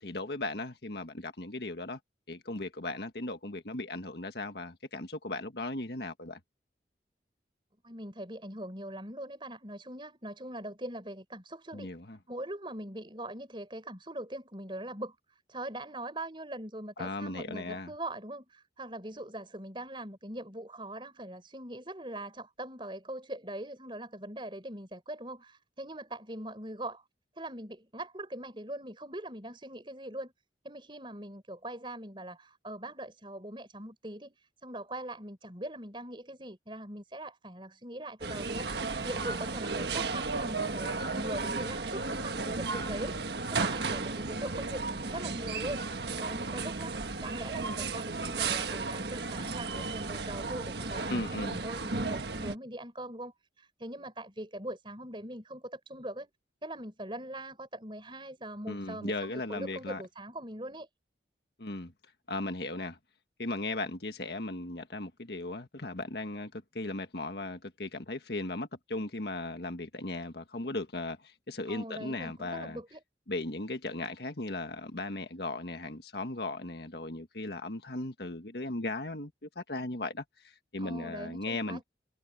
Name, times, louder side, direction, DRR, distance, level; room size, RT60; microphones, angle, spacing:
voice 1, 0.0-2.0 2.3-6.4 11.7-12.2 17.0-17.9 51.1-51.6 58.6-60.0 61.6-61.9 62.3-63.0 63.4-72.8 73.3-81.8, left 2 dB, 70° left, 1.6 m, -37 dB
voice 2, 7.8-11.9 12.3-15.2 15.5-27.0 27.4-30.3 30.6-45.9 46.2-56.3 56.6-60.9 71.7-73.0 80.8-81.9, right 1 dB, 30° right, 5.2 m, -41 dB
sound 1, 38.2-52.6, right 4 dB, 75° right, 1.4 m, -34 dB
head